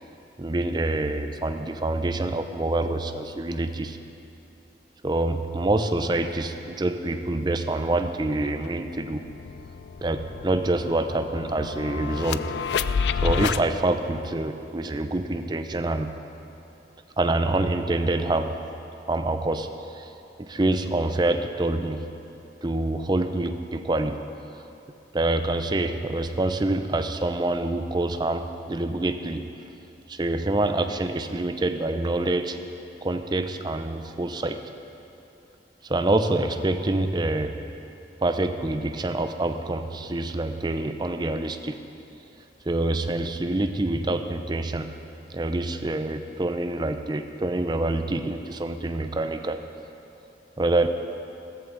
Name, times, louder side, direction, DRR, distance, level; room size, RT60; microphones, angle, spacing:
voice 1, 0.4-4.0 5.0-9.3 10.0-12.5 13.2-16.1 17.2-18.6 19.0-20.1 20.4-22.1 22.6-24.2 25.1-29.5 30.1-32.6 33.0-34.6 35.8-37.5 38.2-41.8 42.7-44.9 45.3-49.6 50.6-50.9, right 2 dB, 25° right, 8 dB, 0.5 m, -26 dB
sound 1, 8.2-8.3 8.6-13.6, left 6 dB, 75° left, 0.4 m, -30 dB
16.0 x 14.0 x 3.9 m, 2.8 s
head